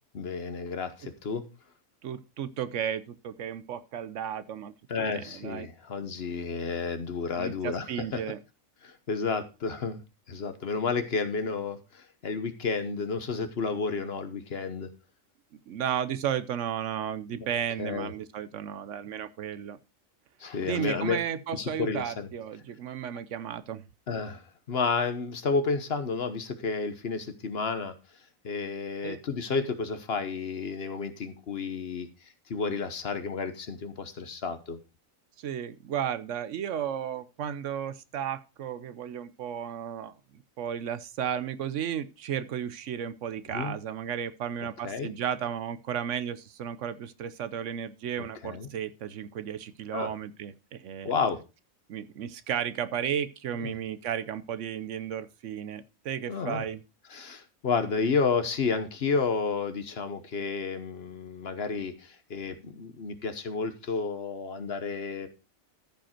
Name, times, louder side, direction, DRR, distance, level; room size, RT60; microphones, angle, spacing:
voice 1, 0.1-1.4 4.9-7.9 8.1-8.2 8.8-10.0 10.3-14.9 17.8-18.1 20.4-21.2 21.5-22.3 24.1-24.4 24.7-27.9 28.4-32.1 32.5-34.8 43.5-43.8 44.8-45.1 48.4-48.7 49.9-50.1 51.0-51.4 53.6-53.7 56.3-56.6 57.1-65.3, left 4 dB, 50° left, 10 dB, 1.1 m, -31 dB
voice 2, 2.0-4.7 5.0-5.7 7.4-8.4 15.7-19.8 20.6-23.8 29.0-29.2 35.4-51.1 51.9-56.8, right 9 dB, 70° right, 14 dB, 0.9 m, -34 dB
14.0 x 5.1 x 4.3 m, 0.30 s
omnidirectional pair, 1.4 m